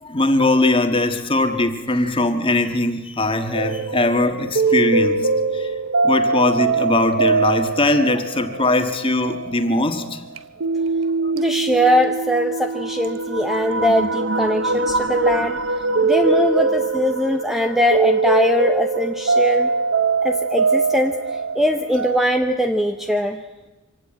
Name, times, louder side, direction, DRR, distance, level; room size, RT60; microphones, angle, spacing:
voice 1, 0.0-5.7 6.0-10.2, left 2 dB, 25° left, 7 dB, 1.6 m, -20 dB
sound 1, 3.5-22.2, right 3 dB, 60° right, 0.8 m, -22 dB
voice 2, 11.3-15.6 16.0-19.7 20.2-21.2 21.6-23.4, equal, ahead, 6 dB, 0.7 m, -21 dB
25.0 x 17.0 x 8.8 m, 1.2 s
head